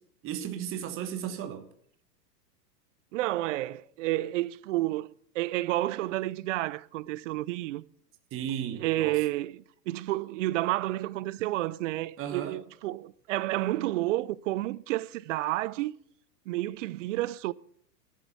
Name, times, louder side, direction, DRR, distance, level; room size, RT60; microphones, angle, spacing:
voice 1, 0.2-1.7 8.3-9.2 12.2-12.6, right 9 dB, 25° right, 1.3 m, -35 dB
voice 2, 3.1-7.8 8.8-15.9 16.5-17.5, right 16 dB, 50° right, 0.5 m, -30 dB
13.0 x 7.3 x 8.2 m
hypercardioid pair, 125°, 49 cm